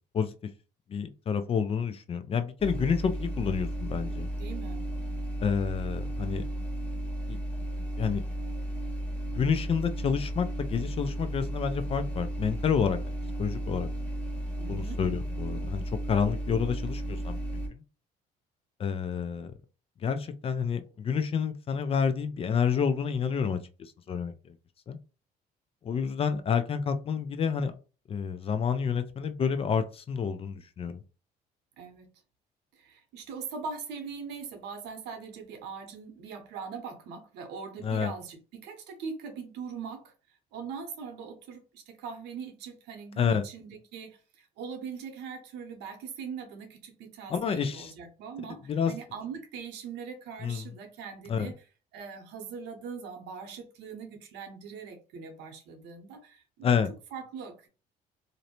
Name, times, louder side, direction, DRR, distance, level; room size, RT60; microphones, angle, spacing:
voice 1, 0.9-4.3 5.4-6.5 7.3-7.4 8.0-8.2 9.3-13.0 13.4-13.9 14.7-15.8 16.1-17.8 18.8-19.5 20.0-24.3 24.9-25.0 25.8-27.7 28.1-31.0 37.8-38.1 43.2-43.4 47.3-47.9 48.7-48.9 50.4-50.6 51.3-51.5 56.6-56.9, left 6 dB, 35° left, 0.4 m, -29 dB
sound 1, 2.6-17.7, right 1 dB, 5° left, 0.8 m, -34 dB
voice 2, 4.4-4.8 14.6-15.0 31.8-32.1 32.7-40.1 40.5-51.5 51.9-56.7 57.1-57.7, right 6 dB, 85° right, 0.8 m, -41 dB
2.6 x 2.0 x 2.9 m
cardioid pair, 110°, 17 cm